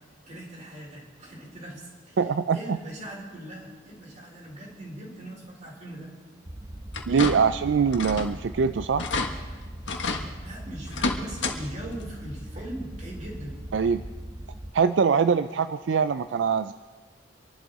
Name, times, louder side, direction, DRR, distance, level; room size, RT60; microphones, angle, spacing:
voice 1, 0.3-2.2 2.5-6.1 6.7-6.8 10.4-13.6, right 1 dB, 40° right, -2 dB, 4.1 m, -40 dB
voice 2, 2.2-2.8 7.1-9.1 13.7-14.0 14.7-16.7, right 6 dB, 75° right, 11 dB, 0.4 m, -23 dB
sound 1, 6.4-14.7, right 1 dB, 20° right, 0.6 m, -40 dB
sound 2, 6.9-7.6 7.9-8.4 8.7-8.8 9.0-9.3 9.9-10.2 10.9-11.6 11.9-12.0 13.4-13.5 14.0-14.1, left 3 dB, 75° left, 1.4 m, -29 dB
26.0 x 11.5 x 4.0 m, 1.4 s
head